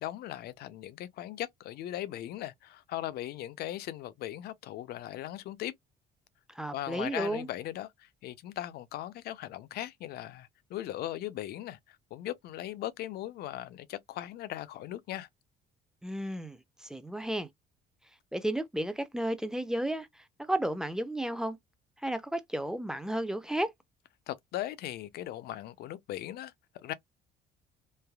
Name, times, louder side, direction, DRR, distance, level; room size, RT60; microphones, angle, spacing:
voice 1, 0.0-5.7 6.7-15.3 24.3-26.9, left 13 dB, 70° left, 0.5 m, -39 dB
voice 2, 6.5-7.5 16.0-17.5 18.3-21.6 22.0-23.7, right 1 dB, 5° right, 0.5 m, -33 dB
3.2 x 2.2 x 2.2 m
cardioid pair, 110°, 17 cm